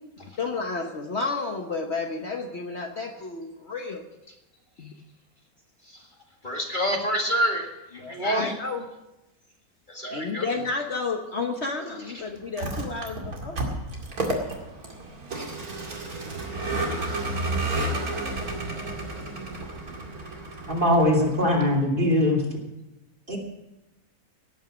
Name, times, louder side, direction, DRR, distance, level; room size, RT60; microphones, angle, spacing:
voice 1, 0.4-4.0 4.8-4.9 8.0-8.8 10.1-13.6 17.7-18.5, left 4 dB, 50° left, 3 dB, 1.3 m, -31 dB
voice 2, 6.4-8.5 9.9-10.5, equal, 30° left, 1 dB, 2.0 m, -27 dB
Vehicle, 12.4-21.8, right 2 dB, 70° right, 2.8 m, -31 dB
voice 3, 20.7-22.4 23.3-23.4, left 1 dB, 35° right, 1 dB, 3.0 m, -21 dB
17.5 x 9.0 x 6.2 m, 0.97 s
omnidirectional pair, 1.6 m